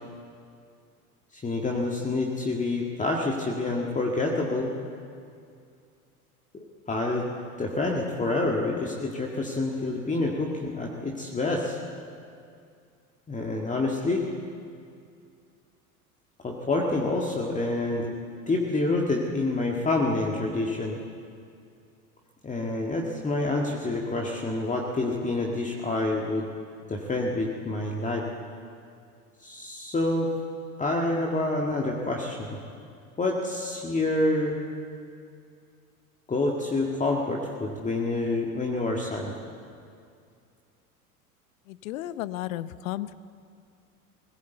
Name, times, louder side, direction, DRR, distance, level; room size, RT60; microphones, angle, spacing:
voice 1, 1.3-4.7 6.5-7.3 7.6-11.8 13.3-14.3 16.4-18.1 18.5-21.0 22.4-26.5 26.9-28.3 29.4-30.3 30.8-32.6 33.2-34.6 36.3-39.3, left 2 dB, 15° left, 0 dB, 1.8 m, -27 dB
voice 2, 41.7-43.1, left 14 dB, 60° left, 16 dB, 0.8 m, -33 dB
19.5 x 16.5 x 8.2 m, 2.4 s
figure-of-eight pair, 80°, 45 cm